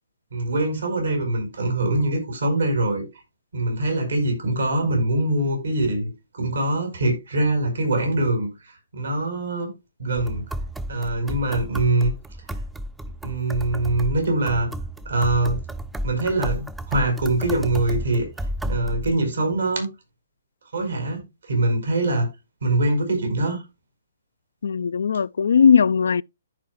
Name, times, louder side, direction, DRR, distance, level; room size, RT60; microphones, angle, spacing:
voice 1, 0.3-3.0 3.5-9.7 10.0-10.4 10.9-12.1 13.2-14.7 15.0-15.6 16.0-18.3 18.6-19.9 20.7-22.3 22.6-23.6, right 2 dB, 75° right, 4.4 m, -23 dB
sound 1, 10.2-19.1, right 1 dB, 5° right, 0.6 m, -32 dB
voice 2, 24.6-26.2, left 6 dB, 70° left, 0.3 m, -18 dB
14.0 x 4.7 x 2.4 m
hypercardioid pair, 135°, 0 cm